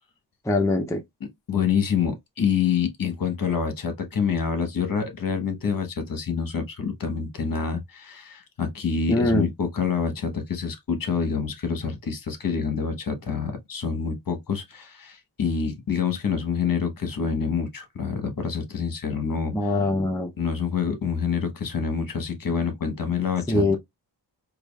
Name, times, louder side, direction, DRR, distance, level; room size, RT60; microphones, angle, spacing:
voice 1, 0.5-1.0 9.1-9.5 19.5-20.3 23.5-23.8, left 2 dB, 10° left, 0.5 m, -22 dB
voice 2, 1.5-19.7 20.4-23.8, left 6 dB, 55° left, 1.0 m, -27 dB
4.8 x 2.4 x 2.2 m
wide cardioid pair, 95°, 42 cm